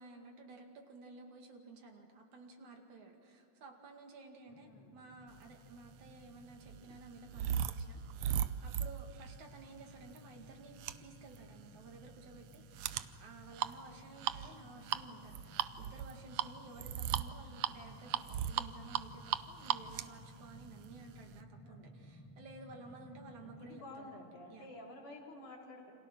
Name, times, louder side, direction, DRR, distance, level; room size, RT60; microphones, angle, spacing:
voice 1, 0.0-24.7, right 3 dB, 65° right, 2 dB, 3.5 m, -54 dB
voice 2, 4.4-5.0 21.6-21.9 23.4-25.9, left 2 dB, 70° left, -2 dB, 5.1 m, -51 dB
sound 1, 4.5-23.8, left 1 dB, 10° left, 0.9 m, -58 dB
sound 2, 5.7-21.4, right 10 dB, 90° right, 1.4 m, -39 dB
29.0 x 26.5 x 6.2 m, 2.9 s
omnidirectional pair, 3.7 m